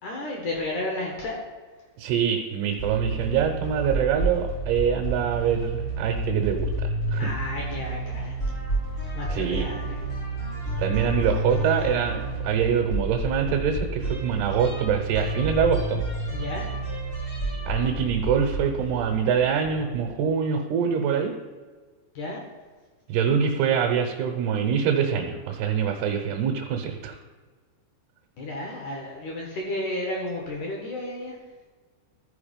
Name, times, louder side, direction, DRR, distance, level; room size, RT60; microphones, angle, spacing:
voice 1, 0.0-1.4 7.2-8.4 9.1-10.1 16.3-16.7 22.1-22.4 28.4-31.4, left 1 dB, 70° left, -1 dB, 1.9 m, -32 dB
voice 2, 2.0-7.3 9.3-9.6 10.8-12.2 12.4-16.0 17.7-21.3 23.1-27.2, right 7 dB, 75° right, 2 dB, 2.6 m, -24 dB
sound 1, 2.8-20.1, right 2 dB, 45° left, 0.9 m, -30 dB
13.5 x 4.8 x 5.1 m, 1.4 s
omnidirectional pair, 5.2 m